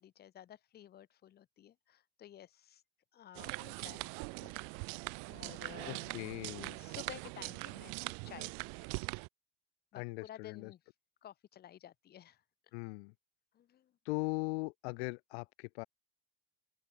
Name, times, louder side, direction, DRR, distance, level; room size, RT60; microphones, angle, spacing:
voice 1, 0.0-2.8 3.1-4.9 5.3-6.3 6.8-9.1 9.9-10.8 11.2-12.4 13.5-14.0, left 11 dB, 30° left, 4.2 m, -54 dB
sound 1, 3.3-9.3, right 40 dB or more, 55° right, 0.8 m, -42 dB
voice 2, 5.9-6.8 10.0-10.7 12.7-13.1 14.1-15.8, left 28 dB, 75° left, 2.1 m, -39 dB
open air
cardioid pair, 170°, 33 cm